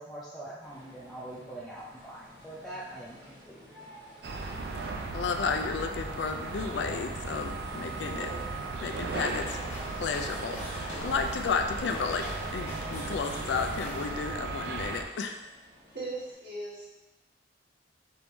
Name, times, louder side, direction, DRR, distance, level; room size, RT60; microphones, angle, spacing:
voice 1, 0.0-3.2 3.5-3.6, right 1 dB, ahead, -9 dB, 0.5 m, -43 dB
sound 1, 0.6-16.3, equal, 25° right, 1.3 m, -53 dB
sound 2, 4.2-15.0, right 3 dB, 60° right, 0.4 m, -36 dB
voice 2, 5.1-8.3 8.8-9.6 9.9-15.4, left 5 dB, 75° left, 5 dB, 0.3 m, -32 dB
sound 3, 8.9-14.2, equal, 40° left, 1.2 m, -43 dB
voice 3, 15.9-16.9, right 2 dB, 80° right, -6 dB, 1.4 m, -38 dB
4.4 x 3.4 x 2.6 m, 1.0 s
head